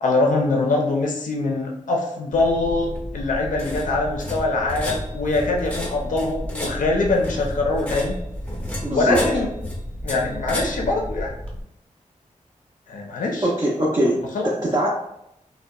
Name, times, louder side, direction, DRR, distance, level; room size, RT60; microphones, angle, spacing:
voice 1, 0.0-8.1 8.9-9.5 10.0-11.3 12.9-13.5 14.3-14.5, left 2 dB, 75° left, 0 dB, 0.4 m, -23 dB
sound 1, 2.3-11.6, equal, 10° left, 0.6 m, -31 dB
voice 2, 8.8-9.2 13.4-14.9, right 1 dB, 35° right, -4 dB, 0.5 m, -22 dB
2.7 x 2.1 x 2.3 m, 0.81 s
cardioid pair, 60°, 13 cm